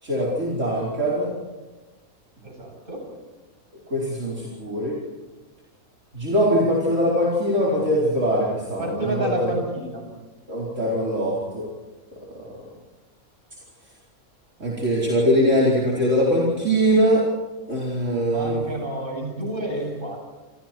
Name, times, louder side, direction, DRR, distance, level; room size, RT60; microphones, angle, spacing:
voice 1, 0.0-1.3 3.9-5.0 6.1-9.5 10.5-11.7 12.1-12.5 14.6-17.2 17.7-18.6, equal, 60° right, -5 dB, 5.2 m, -22 dB
voice 2, 2.4-3.1 8.8-10.0 18.2-20.4, right 1 dB, 35° right, 1 dB, 8.2 m, -30 dB
29.0 x 27.0 x 4.6 m, 1.2 s
omnidirectional pair, 1.5 m